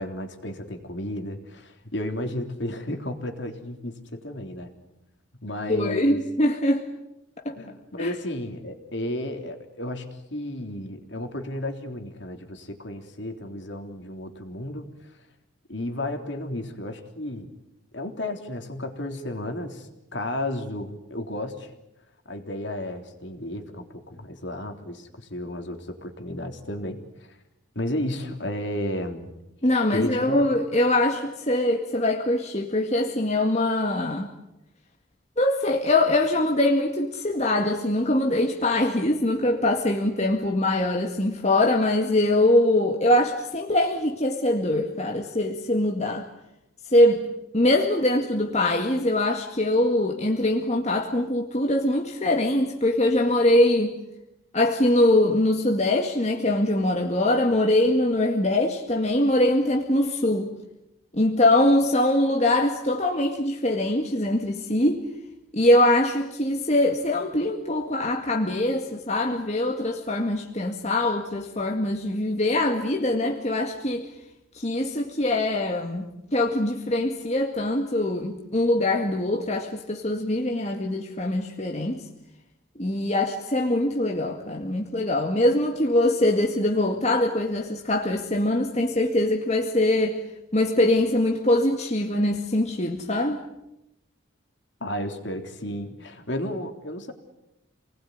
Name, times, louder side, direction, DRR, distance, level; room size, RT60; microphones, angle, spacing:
voice 1, 0.0-4.7 5.4-6.2 7.6-14.9 15.7-17.5 17.9-21.7 22.3-27.0 27.3-27.4 27.8-29.3 29.9-30.4 94.8-97.1, left 1 dB, 60° left, 5 dB, 3.5 m, -33 dB
voice 2, 5.7-6.8 7.5-7.6 8.0-8.1 29.6-34.3 35.4-46.3 46.9-47.3 47.5-53.9 54.5-60.5 61.1-65.0 65.5-74.1 74.5-82.1 82.8-90.2 90.5-93.4, left 1 dB, 35° left, 2 dB, 2.0 m, -23 dB
28.5 x 20.0 x 9.5 m, 0.88 s
head